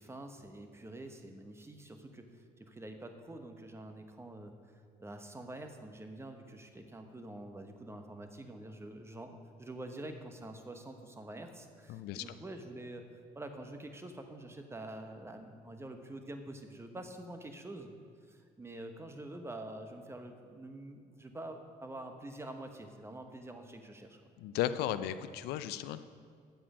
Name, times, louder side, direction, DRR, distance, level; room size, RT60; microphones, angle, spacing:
voice 1, 0.0-4.5 5.0-17.9 18.3-24.2, right 1 dB, 15° right, 6 dB, 1.1 m, -46 dB
voice 2, 11.9-12.3 24.4-26.0, left 11 dB, 85° left, 13 dB, 0.5 m, -35 dB
10.5 x 7.5 x 5.0 m, 2.1 s
cardioid pair, 85°, 16 cm